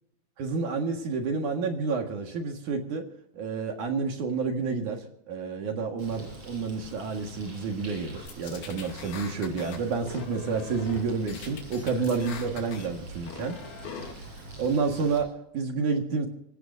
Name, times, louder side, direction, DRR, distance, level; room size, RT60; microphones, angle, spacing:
voice 1, 0.4-3.1 3.4-13.6 14.6-16.3, right 4 dB, 55° right, 3 dB, 2.9 m, -29 dB
Bird, 6.0-15.2, right 2 dB, 35° right, 7.0 m, -44 dB
sound 1, 8.3-9.8 10.1-11.0 11.3-12.9 13.2-14.1, left 6 dB, 70° left, 4.5 m, -42 dB
26.5 x 16.5 x 2.7 m, 0.75 s
omnidirectional pair, 4.6 m